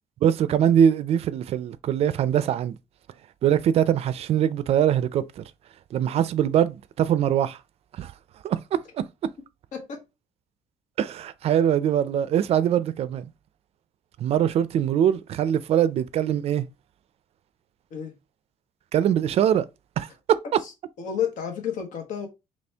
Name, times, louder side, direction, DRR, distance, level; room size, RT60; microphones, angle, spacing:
voice 1, 0.2-2.8 3.4-5.4 5.9-7.6 8.0-8.1 8.4-8.8 11.0-13.3 14.2-16.7 18.9-19.6 20.0-20.4, right 9 dB, 50° right, 0.4 m, -22 dB
voice 2, 9.7-10.0 17.9-18.1 20.6-20.7 21.0-22.3, left 8 dB, 75° left, 1.4 m, -30 dB
4.3 x 3.0 x 3.3 m
cardioid pair, 175°, 13 cm